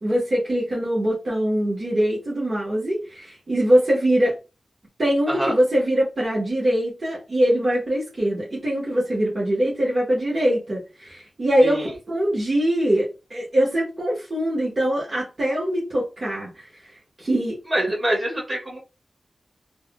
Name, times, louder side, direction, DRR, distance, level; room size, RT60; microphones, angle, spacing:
voice 1, 0.0-4.4 5.0-16.7 17.2-17.6, right 1 dB, 50° right, 1.2 m, -22 dB
voice 2, 11.6-11.9 17.7-18.8, right 1 dB, 30° right, 1.8 m, -25 dB
3.3 x 2.4 x 2.2 m
cardioid pair, 65°, 0 cm